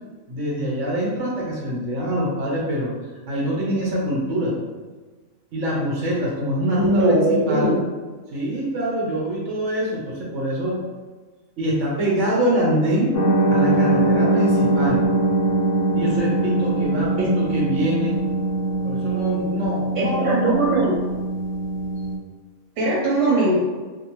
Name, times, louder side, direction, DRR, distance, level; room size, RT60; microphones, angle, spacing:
voice 1, 0.3-2.9 3.3-4.6 5.5-7.8 8.3-10.9 11.6-13.2 13.5-15.1 15.9-18.2 18.8-20.6, equal, 60° right, -4 dB, 1.1 m, -24 dB
voice 2, 6.7-7.9 17.2-17.3 20.0-20.9 22.8-23.6, right 1 dB, 85° right, -5 dB, 1.1 m, -20 dB
sound 1, 13.1-22.2, right 2 dB, 65° left, 1.0 m, -22 dB
2.5 x 2.4 x 2.9 m, 1.3 s
omnidirectional pair, 1.4 m